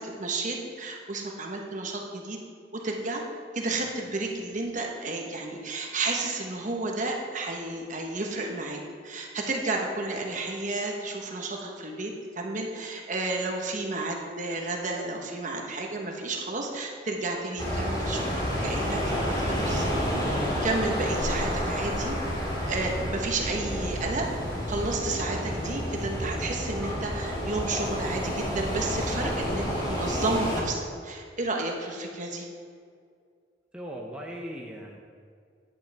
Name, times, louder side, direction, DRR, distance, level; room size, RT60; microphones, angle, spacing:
voice 1, 0.0-2.4 2.7-3.2 3.5-19.9 20.2-24.3 24.7-32.5, right 2 dB, 45° right, 1 dB, 1.2 m, -32 dB
sound 1, 17.6-30.6, equal, 25° left, 1.9 m, -30 dB
voice 2, 29.1-29.5 33.7-35.0, equal, 5° right, -2 dB, 0.7 m, -39 dB
10.0 x 8.5 x 3.5 m, 2.1 s
head